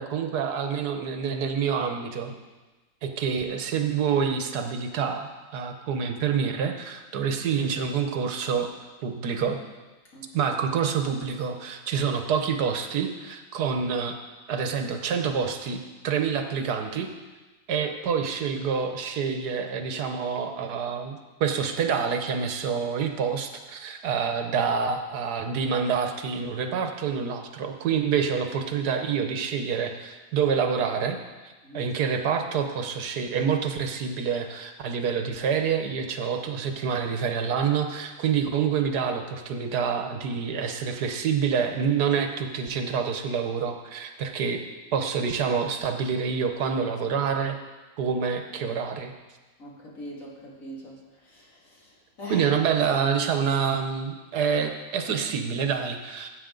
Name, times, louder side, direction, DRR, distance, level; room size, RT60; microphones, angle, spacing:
voice 1, 0.0-2.4 3.0-8.7 9.0-9.6 10.3-14.2 14.5-17.1 17.7-31.2 31.4-44.6 44.9-47.6 48.0-49.1 52.3-56.3, right 6 dB, 80° right, 5 dB, 1.5 m, -27 dB
voice 2, 49.6-51.0 51.3-51.4 52.2-52.5, left 1 dB, 55° left, -4 dB, 2.8 m, -40 dB
15.0 x 8.1 x 3.9 m, 1.2 s
omnidirectional pair, 1.7 m